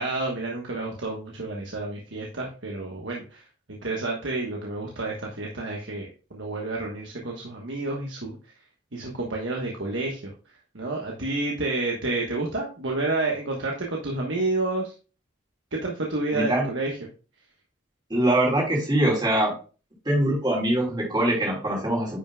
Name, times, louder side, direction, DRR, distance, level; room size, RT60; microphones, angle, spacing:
voice 1, 0.0-8.4 8.9-10.3 10.7-14.9 15.7-17.0, right 2 dB, 75° right, -1 dB, 1.3 m, -30 dB
voice 2, 16.3-16.7 18.1-19.5 20.0-22.2, right 1 dB, 25° right, -3 dB, 3.3 m, -23 dB
9.9 x 5.7 x 2.3 m, 0.35 s
head